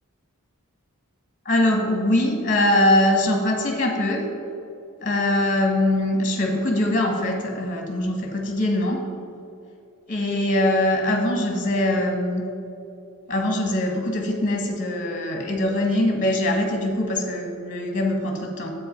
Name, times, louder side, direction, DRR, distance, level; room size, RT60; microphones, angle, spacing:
voice 1, 1.4-4.2 5.0-9.0 10.1-12.4 13.3-18.7, left 1 dB, 40° left, 2 dB, 1.6 m, -22 dB
8.7 x 8.1 x 5.2 m, 2.7 s
head